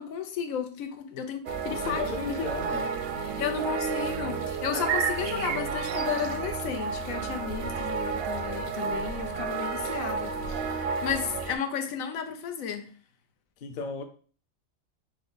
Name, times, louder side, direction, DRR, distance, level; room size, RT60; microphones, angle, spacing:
voice 1, 0.0-2.0 2.3-2.5 3.4-12.9, left 7 dB, 90° left, 1.1 m, -33 dB
sound 1, 1.5-11.6, right 5 dB, 65° right, 0.6 m, -31 dB
voice 2, 1.7-2.9 4.8-5.1 13.6-14.0, left 4 dB, 55° left, 0.6 m, -35 dB
6.0 x 2.2 x 3.9 m
omnidirectional pair, 1.4 m